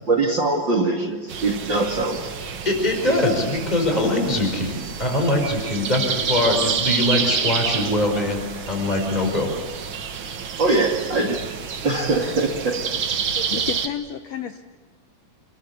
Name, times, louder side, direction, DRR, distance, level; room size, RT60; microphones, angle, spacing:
voice 1, 0.1-2.3 10.6-11.4 11.8-12.9 13.3-13.5, right 3 dB, 35° right, 4 dB, 2.6 m, -22 dB
sound 1, 1.3-13.9, right 6 dB, 55° right, 1.4 m, -29 dB
voice 2, 2.7-8.4 8.7-9.5, left 1 dB, 10° left, 3 dB, 5.2 m, -22 dB
voice 3, 13.5-14.6, left 9 dB, 75° left, 8 dB, 1.6 m, -30 dB
28.5 x 22.5 x 8.5 m, 1.4 s
omnidirectional pair, 4.1 m